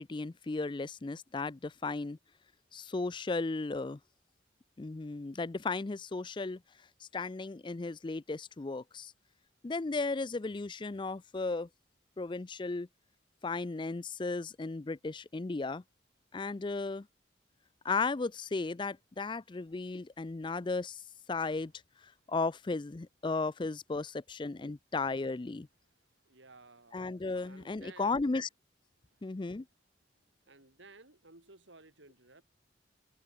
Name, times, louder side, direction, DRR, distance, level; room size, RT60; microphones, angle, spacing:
voice 1, 0.0-2.2 2.7-4.0 4.8-6.6 7.1-9.1 9.6-11.7 12.2-12.9 13.4-15.8 16.3-17.1 17.8-21.0 21.3-21.7 22.3-25.7 26.9-28.5 29.2-29.6, left 3 dB, 25° left, 0.4 m, -35 dB
voice 2, 26.3-27.1 27.5-28.2 30.5-32.4, right 3 dB, 85° right, 4.0 m, -56 dB
open air
head